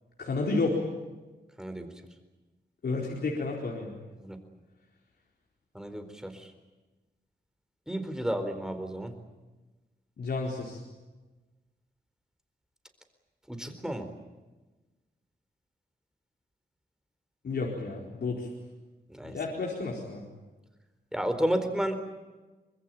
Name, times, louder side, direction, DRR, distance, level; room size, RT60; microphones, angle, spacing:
voice 1, 0.2-0.8 2.8-3.9 10.2-10.8 17.4-18.5 19.2-20.2, left 3 dB, 65° left, -2 dB, 4.4 m, -31 dB
voice 2, 1.6-1.9 4.2-4.4 5.7-6.5 7.9-9.1 13.5-14.1 19.1-19.3 21.1-22.0, equal, 5° right, 7 dB, 4.2 m, -32 dB
25.0 x 21.0 x 9.1 m, 1.2 s
cardioid pair, 80°, 18 cm